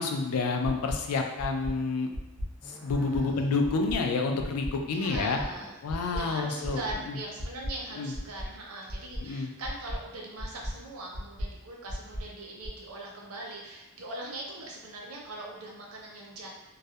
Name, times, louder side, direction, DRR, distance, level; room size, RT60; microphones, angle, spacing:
voice 1, 0.0-2.1 2.6-5.4 5.8-6.8 7.1-7.2 8.0-8.1 9.2-9.5, left 4 dB, 85° left, 4 dB, 0.3 m, -29 dB
sound 1, 0.9-1.0 1.4-1.7 2.1-2.5 2.9-3.2 3.6-4.0 4.4-4.7 5.1-5.5 5.9-6.2 6.6-7.0 7.4-7.7 8.1-8.5 8.9-9.2 9.6-10.0 10.4-10.7 11.1-11.5 11.9-12.2 12.6-12.7, equal, 50° left, 0.8 m, -34 dB
sound 2, 2.6-7.6, equal, 5° left, 0.4 m, -50 dB
voice 2, 2.9-3.4 4.9-5.7 6.1-16.5, right 2 dB, 75° right, -2 dB, 0.6 m, -41 dB
2.3 x 2.0 x 2.7 m, 1.1 s
head